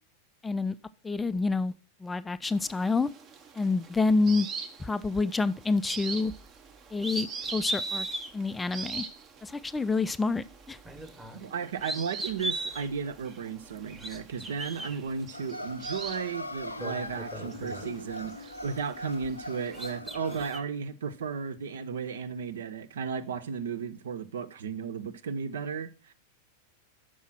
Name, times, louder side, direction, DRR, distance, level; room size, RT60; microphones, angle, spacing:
voice 1, 0.4-0.8 1.0-1.7 2.0-3.1 3.5-4.5 4.8-6.3 6.9-7.3 7.5-8.1 8.3-9.0 9.4-10.8, left 3 dB, 10° left, 0.3 m, -27 dB
sound 1, 2.5-20.0, right 6 dB, 30° right, 0.9 m, -45 dB
sound 2, 6.3-6.5 7.0-8.3 8.9-9.0 10.8-11.5 11.8-12.9 13.8-14.9 16.1-16.2 16.6-18.3 18.6-19.4 19.7-20.6, right 1 dB, 10° right, 1.2 m, -36 dB
voice 2, 11.3-26.1, right 6 dB, 60° right, 0.6 m, -34 dB
sound 3, 15.3-20.5, left 1 dB, 80° left, 0.5 m, -40 dB
6.2 x 5.5 x 6.1 m
figure-of-eight pair, 90°, 0 cm